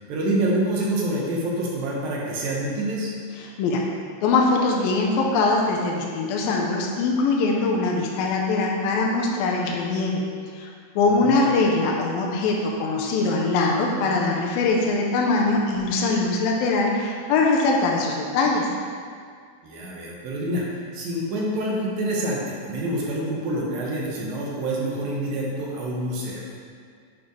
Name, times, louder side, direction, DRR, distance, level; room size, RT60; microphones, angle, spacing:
voice 1, 0.0-3.1 11.0-11.4 19.6-26.5, right 1 dB, 75° right, -4 dB, 2.8 m, -27 dB
voice 2, 3.4-3.8 4.2-10.2 10.5-10.7 11.0-18.7, left 3 dB, 80° left, -1 dB, 2.4 m, -22 dB
8.8 x 3.3 x 5.4 m, 2.1 s
omnidirectional pair, 4.3 m